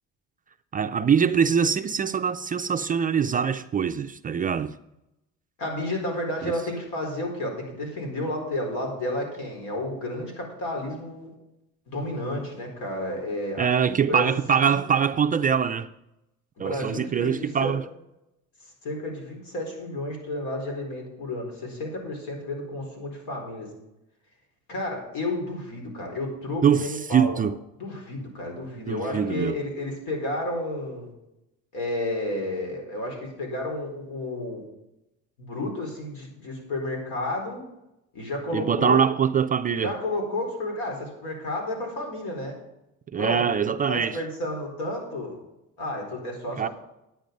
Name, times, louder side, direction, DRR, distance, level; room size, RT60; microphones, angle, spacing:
voice 1, 0.7-4.7 6.4-6.5 13.6-15.9 16.6-17.8 26.6-27.6 28.9-29.6 38.5-39.9 43.1-44.2 46.6-46.7, right 7 dB, 25° right, 0.3 m, -23 dB
voice 2, 5.6-11.3 11.9-14.3 14.6-14.8 16.6-17.8 18.6-23.7 24.7-27.4 27.8-31.1 31.7-34.6 35.4-37.6 38.1-39.1 39.8-42.6 43.2-43.5 43.9-45.4 45.8-46.7, left 1 dB, 80° left, 4.4 m, -31 dB
10.5 x 9.1 x 5.2 m
cardioid pair, 140°, 34 cm